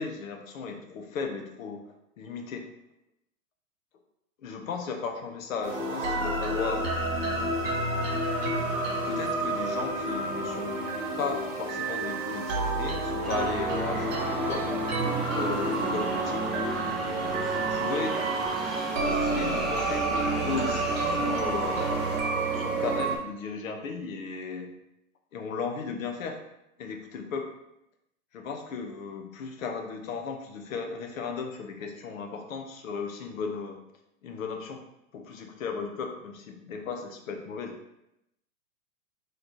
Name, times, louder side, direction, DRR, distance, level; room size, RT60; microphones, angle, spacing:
voice 1, 0.0-1.9 2.2-2.7 4.4-6.8 9.0-10.8 11.2-14.6 15.3-16.5 17.7-18.2 19.1-21.8 22.5-24.7 25.3-26.4 26.8-27.5 28.3-33.8 34.2-34.8 35.1-37.8, left 5 dB, 75° left, 4 dB, 0.8 m, -35 dB
sound 1, 5.6-23.2, right 2 dB, 65° right, 1.0 m, -29 dB
sound 2, 13.2-22.2, equal, ahead, 0.5 m, -36 dB
4.0 x 3.2 x 2.9 m, 0.84 s
hypercardioid pair, 110°, 41 cm